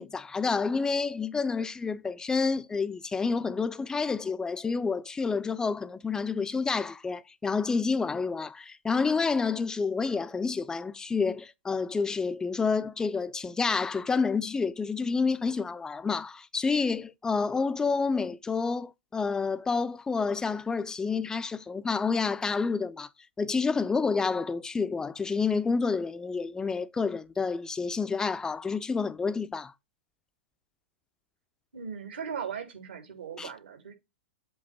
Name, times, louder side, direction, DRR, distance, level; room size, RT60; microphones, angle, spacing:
voice 1, 0.0-23.1 23.4-29.7 33.4-33.5, left 4 dB, 10° left, 0.6 m, -29 dB
voice 2, 31.7-33.9, right 7 dB, 80° right, 3.1 m, -38 dB
7.8 x 3.0 x 5.8 m
hypercardioid pair, 110°, 6 cm